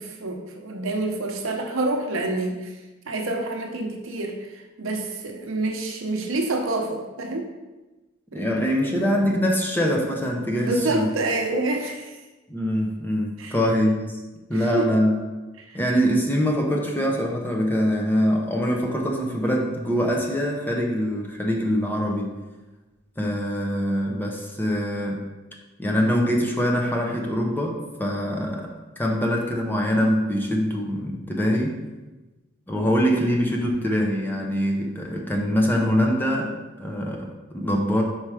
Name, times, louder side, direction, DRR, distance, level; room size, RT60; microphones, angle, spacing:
voice 1, 0.0-2.7 3.1-7.5 8.3-8.5 10.6-12.2 13.4-13.5 14.5-14.9 15.6-15.8, right 2 dB, 70° right, 2 dB, 0.9 m, -27 dB
voice 2, 8.3-11.1 12.5-14.1 14.5-15.2 15.7-22.4 23.2-25.3 25.8-31.8 32.7-38.0, equal, 10° left, 0 dB, 0.7 m, -24 dB
4.8 x 4.4 x 4.9 m, 1.1 s
head